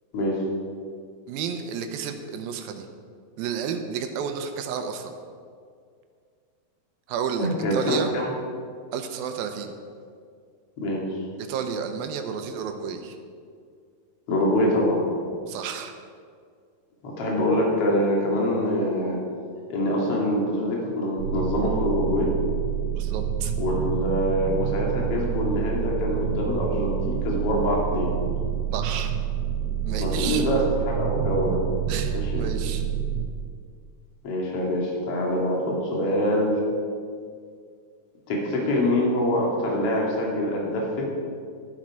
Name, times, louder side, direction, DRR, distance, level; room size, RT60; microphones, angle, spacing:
voice 1, 1.3-2.9 3.4-5.1 7.1-8.1 8.9-9.7 11.4-13.2 15.5-15.9 22.9-23.5 28.7-29.2 29.9-30.5 31.9-32.8, right 7 dB, 90° right, 6 dB, 2.7 m, -31 dB
voice 2, 7.4-8.3 10.8-11.2 14.3-15.0 17.0-19.2 19.7-22.3 23.6-28.1 30.0-31.6 32.1-32.5 34.2-36.6 38.3-41.1, left 1 dB, 45° left, -2 dB, 2.9 m, -25 dB
sound 1, 21.2-33.3, right 8 dB, 70° right, 2.6 m, -28 dB
12.0 x 12.0 x 4.8 m, 2.2 s
omnidirectional pair, 4.2 m